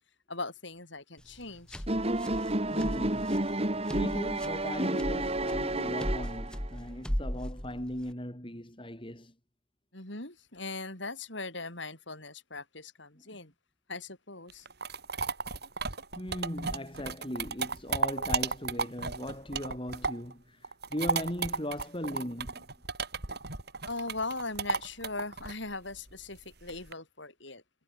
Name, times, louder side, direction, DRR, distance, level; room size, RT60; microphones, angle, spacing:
voice 1, 0.3-1.8 9.9-13.5 13.9-14.7 23.8-27.6, left 3 dB, 60° left, 8.0 m, -39 dB
sound 1, 1.2-8.1, equal, 5° left, 1.1 m, -38 dB
sound 2, 1.9-6.7, right 1 dB, 30° right, 2.8 m, -31 dB
voice 2, 2.7-3.5 3.9-9.3 13.3-13.4 16.2-22.7, left 1 dB, 25° left, 4.3 m, -38 dB
sound 3, 14.5-20.3 20.6-26.9, right 4 dB, 55° right, 6.1 m, -34 dB
head